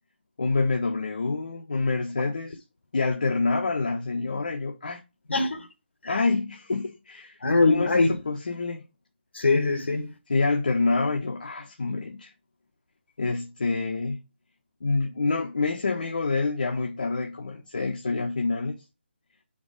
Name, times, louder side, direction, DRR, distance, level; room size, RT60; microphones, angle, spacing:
voice 1, 0.4-2.6 2.9-5.0 6.0-7.4 7.7-8.8 10.3-12.3 13.2-14.2 14.8-18.7, left 3 dB, 50° left, 1.3 m, -27 dB
voice 2, 5.3-5.7 6.0-6.2 7.4-8.1 9.3-10.1, left 3 dB, 70° left, 1.4 m, -22 dB
6.1 x 5.1 x 4.8 m
hypercardioid pair, 180°, 6 cm